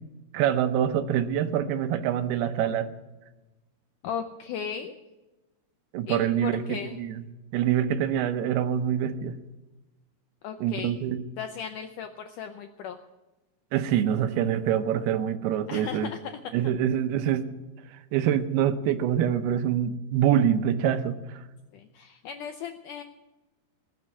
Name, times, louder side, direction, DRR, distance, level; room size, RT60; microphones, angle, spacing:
voice 1, 0.3-2.9 5.9-7.2 7.5-9.4 10.6-11.2 13.7-16.1 16.5-17.5 17.9-21.4, right 9 dB, 80° right, 10 dB, 2.8 m, -25 dB
voice 2, 4.0-4.9 6.1-7.0 10.4-11.0 11.4-13.0 15.7-16.4 21.7-23.0, left 7 dB, 80° left, 6 dB, 1.8 m, -36 dB
20.0 x 6.7 x 9.6 m, 1.1 s
omnidirectional pair, 4.6 m